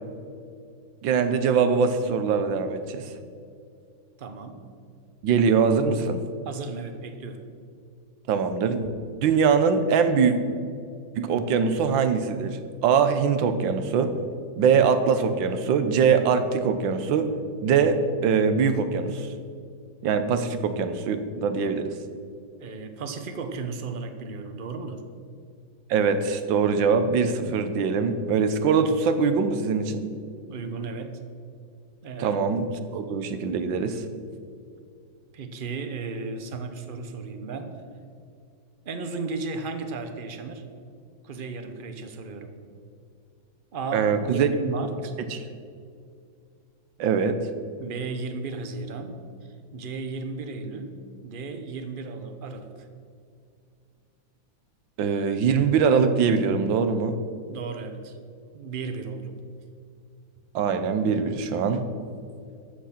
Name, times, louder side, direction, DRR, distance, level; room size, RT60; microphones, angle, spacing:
voice 1, 1.0-3.1 5.2-6.2 8.3-8.9 9.2-10.4 11.1-14.2 14.6-17.3 17.6-19.3 20.0-21.9 25.9-30.1 32.2-32.7 32.9-34.0 43.9-44.5 45.3-45.4 47.0-47.4 55.0-57.2 60.5-61.9, right 6 dB, 80° right, 9 dB, 1.6 m, -22 dB
voice 2, 4.2-4.6 6.4-7.5 22.6-25.0 30.5-31.2 32.0-32.4 35.3-37.8 38.8-40.6 41.2-42.6 43.7-45.2 47.8-52.9 57.5-58.2 58.5-59.4, right 4 dB, 45° right, 7 dB, 0.6 m, -35 dB
14.0 x 6.2 x 5.8 m, 2.4 s
omnidirectional pair, 2.1 m